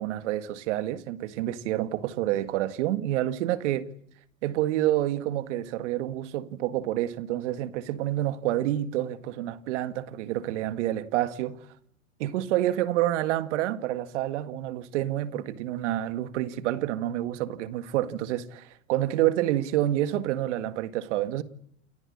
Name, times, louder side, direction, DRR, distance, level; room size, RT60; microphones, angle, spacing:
voice 1, 0.0-3.9 4.4-11.6 12.2-21.4, right 13 dB, 60° right, 1.9 m, -28 dB
29.0 x 12.5 x 9.9 m
supercardioid pair, 150°, 39 cm